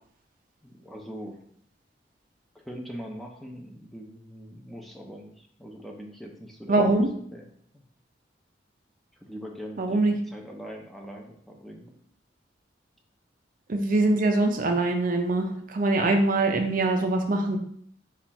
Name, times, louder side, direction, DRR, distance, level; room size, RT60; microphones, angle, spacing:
voice 1, 0.6-1.4 2.5-7.0 7.3-7.5 7.7-7.8 9.2-12.0, equal, ahead, 0 dB, 0.5 m, -42 dB
voice 2, 6.7-7.1 9.8-10.2 13.7-17.6, right 2 dB, 50° right, 4 dB, 0.5 m, -23 dB
4.2 x 2.4 x 4.1 m, 0.64 s
head